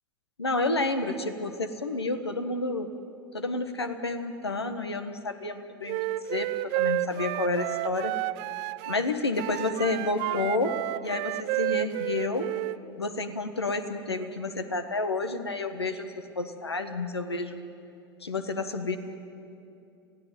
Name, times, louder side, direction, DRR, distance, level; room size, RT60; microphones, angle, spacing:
voice 1, 0.4-2.9 3.3-8.1 8.9-10.7 11.0-12.5 13.0-17.6 18.2-19.0, left 2 dB, 85° left, 8 dB, 1.5 m, -30 dB
Wind instrument woodwind instrument, 5.9-9.1 9.4-12.8, right 17 dB, 45° right, 0.6 m, -31 dB
28.5 x 16.5 x 8.9 m, 2.7 s
figure-of-eight pair, 90°, 13 cm